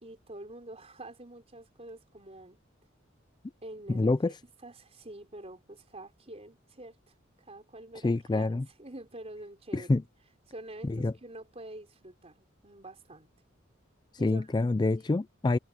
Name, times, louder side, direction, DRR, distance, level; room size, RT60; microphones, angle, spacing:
voice 1, 0.0-2.6 3.6-4.2 4.6-7.0 7.4-10.0 10.5-13.3 14.2-14.5 14.9-15.1, right 1 dB, 30° right, 4.4 m, -47 dB
voice 2, 3.9-4.3 8.0-8.7 9.7-10.0 10.9-11.1 14.2-15.6, left 2 dB, 20° left, 0.3 m, -26 dB
head